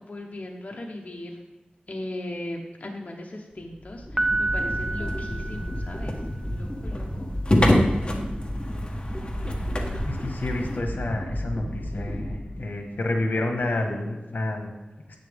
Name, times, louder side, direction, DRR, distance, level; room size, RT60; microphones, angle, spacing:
voice 1, 0.0-1.4 1.9-7.3, left 1 dB, 50° left, 0 dB, 1.1 m, -38 dB
sound 1, 3.6-13.1, equal, 10° left, 0.9 m, -33 dB
Piano, 4.2-6.3, right 2 dB, 15° right, 0.6 m, -29 dB
sound 2, 4.5-10.8, left 1 dB, 30° left, 1.3 m, -27 dB
voice 2, 10.0-14.7, left 2 dB, 75° left, 3 dB, 1.4 m, -29 dB
10.5 x 8.6 x 3.5 m, 1.1 s
wide cardioid pair, 75°, 3 cm